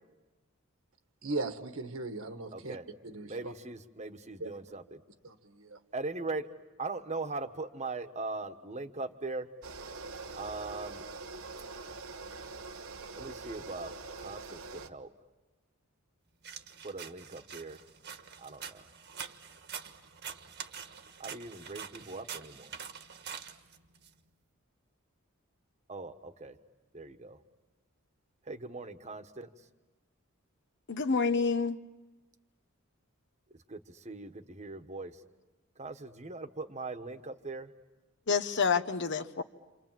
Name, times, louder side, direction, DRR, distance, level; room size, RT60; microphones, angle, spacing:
voice 1, 1.2-2.8 3.0-3.5 4.4-4.5 5.2-5.8, right 2 dB, 70° right, 1.7 m, -38 dB
voice 2, 2.5-2.8 3.3-5.0 5.9-6.5 6.8-9.5 10.4-11.0 13.2-13.9 14.2-15.1 16.8-17.8 18.4-18.8 21.2-22.8 25.9-26.5 26.9-27.4 28.5-29.5 33.7-33.8 34.0-35.1 35.8-37.7, right 3 dB, 35° right, 1.4 m, -40 dB
sound 1, 9.6-14.9, right 3 dB, 90° right, 1.2 m, -44 dB
sound 2, 16.4-24.1, right 7 dB, 50° right, 1.5 m, -45 dB
voice 3, 30.9-31.8 38.3-39.4, left 5 dB, 55° left, 1.1 m, -28 dB
28.5 x 27.5 x 7.6 m
head